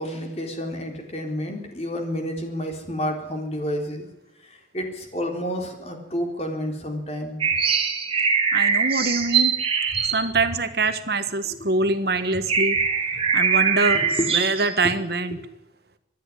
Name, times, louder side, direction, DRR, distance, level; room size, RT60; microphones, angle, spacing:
voice 1, 0.0-4.1 4.7-7.4 12.5-12.6 13.1-13.4 14.2-14.3 15.3-15.4, equal, 35° left, 4 dB, 4.0 m, -30 dB
sound 1, 7.4-11.3 11.9-12.0 12.3-14.8, right 6 dB, 30° right, 2.3 m, -22 dB
voice 2, 8.5-9.5 10.1-12.8 13.3-14.0 14.3-15.4, right 3 dB, 55° right, 11 dB, 1.4 m, -24 dB
25.5 x 10.5 x 9.8 m, 0.91 s
head